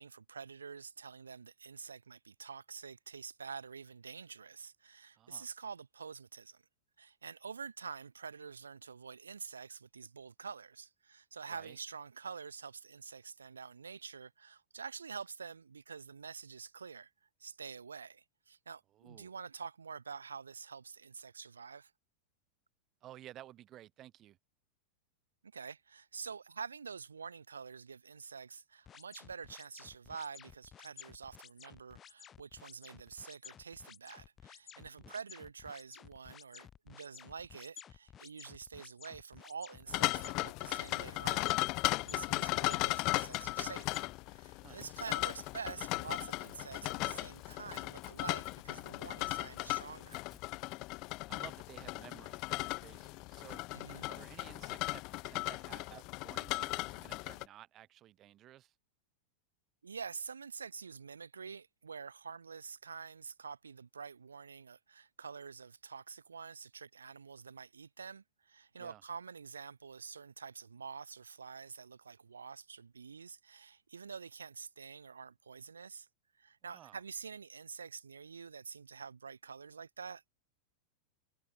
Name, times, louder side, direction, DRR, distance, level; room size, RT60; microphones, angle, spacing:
voice 1, 0.0-6.6 7.0-17.1 17.4-21.9 25.5-44.1 44.3-50.2 53.7-54.1 59.8-76.1 76.4-80.2, right 5 dB, 85° right, 1.7 m, -47 dB
voice 2, 5.2-5.5 11.5-11.8 18.9-19.3 23.0-24.4 34.9-35.1 44.6-44.9 51.2-53.6 54.1-58.7 68.8-69.0 76.6-77.0, right 13 dB, 35° right, 1.9 m, -55 dB
sound 1, 28.9-44.2, left 9 dB, 30° left, 1.9 m, -54 dB
sound 2, 39.9-57.4, left 24 dB, 50° left, 0.7 m, -37 dB
Crackle / Tearing, 44.5-50.8, left 3 dB, 10° left, 4.3 m, -64 dB
hypercardioid pair, 95°, 0 cm